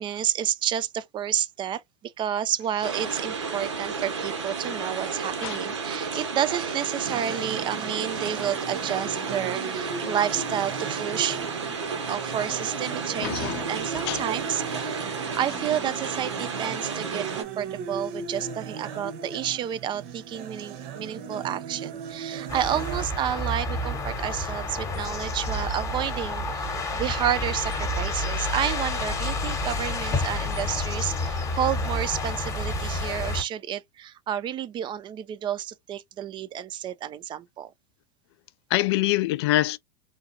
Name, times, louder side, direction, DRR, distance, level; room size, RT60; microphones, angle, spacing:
voice 1, 0.0-11.4 12.1-37.7, right 10 dB, 35° right, 0.5 m, -30 dB
sound 1, 2.8-17.4, right 5 dB, 90° right, 1.1 m, -32 dB
sound 2, 7.0-23.1, right 6 dB, 55° right, 0.9 m, -38 dB
voice 2, 13.2-13.6 13.9-14.2 38.7-39.8, left 16 dB, 65° left, 0.4 m, -25 dB
sound 3, 22.5-33.4, left 2 dB, 20° left, 1.0 m, -29 dB
3.9 x 2.3 x 2.6 m
hypercardioid pair, 100°, 15 cm